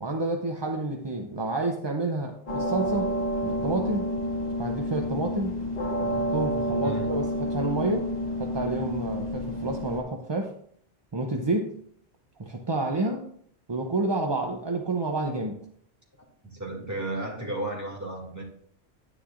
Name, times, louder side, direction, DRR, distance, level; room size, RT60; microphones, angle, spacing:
voice 1, 0.0-3.2 3.4-4.1 4.6-5.6 6.0-8.1 8.4-10.5 11.1-11.7 12.4-13.3 13.7-15.6, right 2 dB, 30° right, 3 dB, 0.5 m, -29 dB
sound 1, 2.5-10.0, equal, 35° left, 1.8 m, -29 dB
voice 2, 16.4-18.4, right 2 dB, 15° right, -2 dB, 2.4 m, -33 dB
10.0 x 9.7 x 2.5 m, 0.63 s
omnidirectional pair, 1.2 m